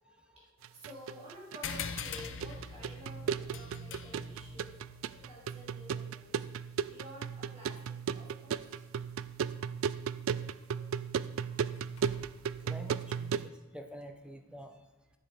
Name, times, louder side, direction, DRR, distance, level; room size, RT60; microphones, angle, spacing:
voice 1, 0.0-6.5 6.8-8.9 9.4-9.6 10.3-11.0 11.4-11.8 12.6-13.2, equal, 30° right, -4 dB, 2.9 m, -52 dB
sound 1, 0.6-13.5, right 7 dB, 60° right, 0.3 m, -36 dB
sound 2, 1.6-6.6, left 6 dB, 55° left, 0.7 m, -43 dB
sound 3, 4.9-5.1 6.2-6.3 6.7-6.8 7.8-9.8 10.1-13.6 14.0-14.1, left 1 dB, 80° left, 1.7 m, -62 dB
voice 2, 12.6-14.8, equal, 5° right, 5 dB, 0.8 m, -47 dB
10.5 x 7.0 x 4.9 m, 1.2 s
head